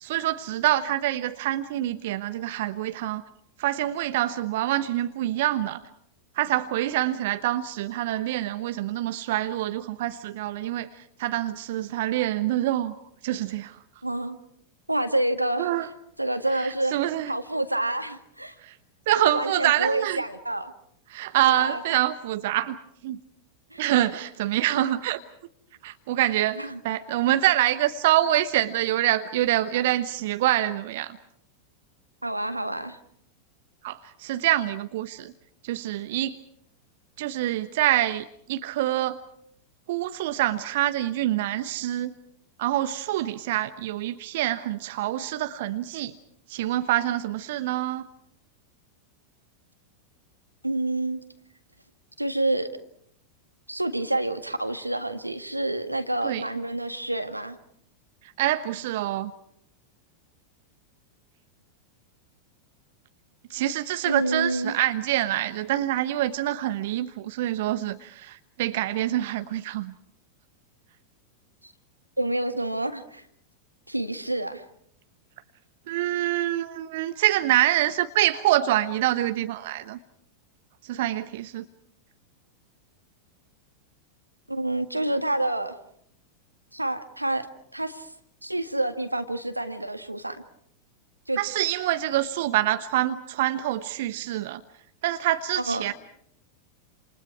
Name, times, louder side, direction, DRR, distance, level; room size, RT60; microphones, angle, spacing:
voice 1, 0.0-3.2 3.6-5.8 6.4-10.9 11.2-12.9 13.2-13.8 15.6-15.9 16.5-17.3 18.6-18.7 19.1-20.2 21.1-22.8 23.0-23.2 23.8-25.2 25.8-31.2 33.8-35.3 35.6-36.4 37.2-39.2 39.9-42.1 42.6-46.2 46.5-48.1 56.2-56.4 58.4-59.3 63.5-69.9 75.9-80.0 80.8-81.6 91.4-94.6 95.0-95.9, right 14 dB, 55° right, 1.1 m, -26 dB
voice 2, 14.0-14.4 14.9-15.7 16.2-17.0 17.3-18.6 19.1-20.7 21.4-21.8 23.7-23.8 24.7-24.9 26.6-26.8 32.2-33.0 50.6-51.2 52.2-52.7 53.7-57.6 64.0-64.8 71.6-71.7 72.2-73.2 73.9-74.6 84.5-85.8 86.7-87.5 87.7-88.1 88.4-90.4 91.3-91.4 95.6-95.9, right 1 dB, 85° right, 1.9 m, -28 dB
29.0 x 28.5 x 4.7 m
figure-of-eight pair, 90°, 0 cm